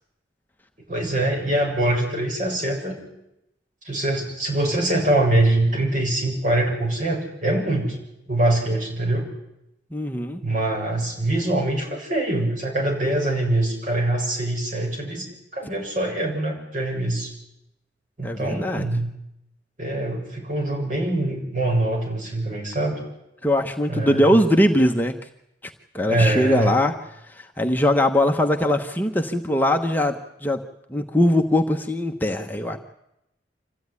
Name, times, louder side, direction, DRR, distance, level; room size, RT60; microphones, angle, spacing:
voice 1, 0.9-3.0 3.8-8.0 8.3-9.3 10.4-17.3 18.2-19.1 19.8-23.0 23.9-24.4 26.1-26.8, right 1 dB, 45° right, 0 dB, 7.5 m, -24 dB
voice 2, 9.9-10.4 18.2-18.8 23.4-25.1 25.9-26.9 27.3-30.6 30.9-32.8, left 1 dB, 10° left, 3 dB, 1.1 m, -21 dB
26.0 x 15.0 x 9.8 m, 0.85 s
head